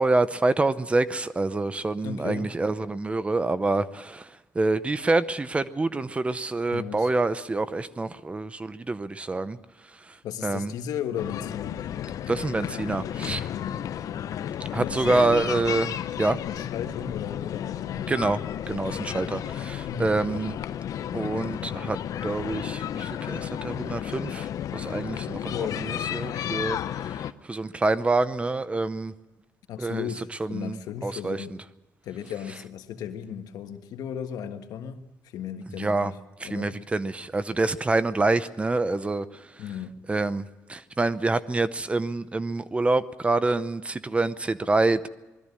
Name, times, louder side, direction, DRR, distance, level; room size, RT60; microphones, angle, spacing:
voice 1, 0.0-4.3 4.5-9.6 10.4-10.7 12.3-13.5 14.7-16.4 18.1-18.4 18.7-20.6 21.1-26.8 27.5-29.1 29.8-30.1 30.4-31.4 35.8-36.1 36.4-39.5 40.1-45.1, right 2 dB, 20° right, 0.7 m, -26 dB
voice 2, 2.0-2.5 6.7-7.1 10.2-11.8 13.5-13.8 14.8-15.4 16.4-18.1 19.9-20.1 25.5-25.9 29.7-31.6 32.0-36.2 36.4-36.7 39.6-40.0, left 9 dB, 80° left, 1.5 m, -35 dB
sound 1, 11.2-27.3, left 10 dB, 65° left, 0.7 m, -33 dB
21.0 x 14.0 x 9.7 m
cardioid pair, 115°, 6 cm